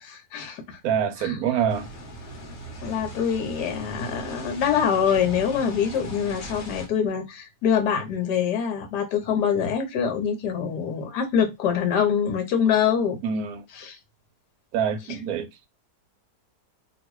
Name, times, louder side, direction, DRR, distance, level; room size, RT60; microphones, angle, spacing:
voice 1, 0.0-0.8 1.2-1.4 2.8-13.2 13.7-14.0, left 7 dB, 80° left, 1.4 m, -25 dB
voice 2, 0.8-1.9 13.2-13.6 14.7-15.7, right 8 dB, 70° right, 1.0 m, -26 dB
sound 1, 1.7-6.9, right 1 dB, 60° left, 1.3 m, -39 dB
2.9 x 2.6 x 3.0 m
omnidirectional pair, 1.8 m